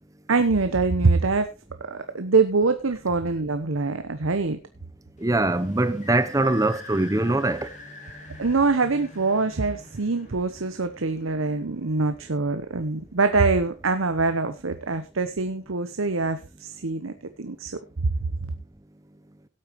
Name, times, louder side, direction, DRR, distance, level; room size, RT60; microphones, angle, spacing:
voice 1, 0.3-1.5 1.9-4.6 8.4-17.1 17.4-18.1, right 3 dB, 80° right, 0.9 m, -24 dB
sound 1, 5.2-12.5, left 2 dB, 35° left, 3.4 m, -46 dB
voice 2, 5.2-7.7, right 2 dB, 15° right, 0.8 m, -22 dB
17.0 x 8.7 x 3.1 m
head